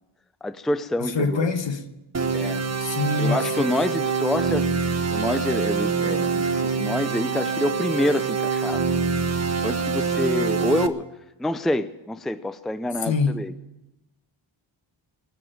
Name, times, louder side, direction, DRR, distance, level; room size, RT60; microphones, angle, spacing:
voice 1, 0.4-1.5 2.3-2.6 3.2-8.8 9.6-11.0 11.4-13.5, left 1 dB, ahead, 0.5 m, -27 dB
voice 2, 1.0-1.9 2.8-3.7 13.0-13.4, left 4 dB, 65° left, 1.5 m, -25 dB
sound 1, 2.1-10.9, right 5 dB, 35° right, 0.9 m, -25 dB
20.0 x 7.0 x 9.2 m
wide cardioid pair, 85°, 47 cm